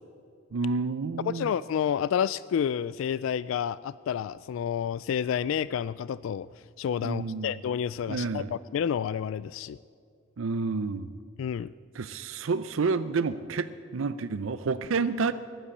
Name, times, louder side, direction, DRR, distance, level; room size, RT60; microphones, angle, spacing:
voice 1, 0.5-1.5 7.0-7.5 8.1-8.5 10.4-11.2 11.9-15.3, right 4 dB, 85° right, 13 dB, 0.5 m, -29 dB
voice 2, 1.3-6.5 6.8-9.8 11.4-11.7, left 8 dB, 80° left, 18 dB, 0.3 m, -29 dB
15.0 x 11.5 x 8.5 m, 2.2 s
head